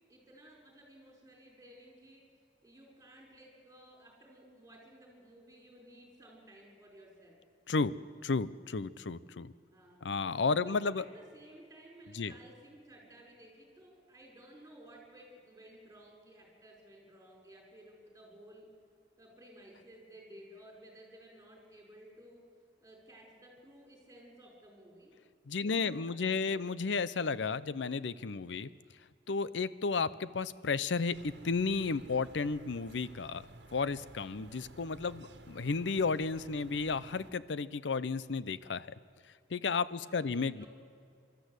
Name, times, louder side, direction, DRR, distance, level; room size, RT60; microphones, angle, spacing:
voice 1, 0.1-2.2 2.6-7.4 9.7-10.1 10.6-18.7 19.2-22.4 22.8-25.1 25.6-26.7 39.9-40.7, right 1 dB, 15° right, 0 dB, 5.4 m, -56 dB
voice 2, 8.2-9.5 10.0-11.0 12.1-12.3 25.5-28.7 29.3-33.5 33.7-38.9 39.5-40.6, left 4 dB, 85° left, 17 dB, 0.6 m, -33 dB
sound 1, 31.1-37.3, right 2 dB, 70° right, 1.5 m, -54 dB
25.0 x 13.0 x 8.1 m, 2.3 s
head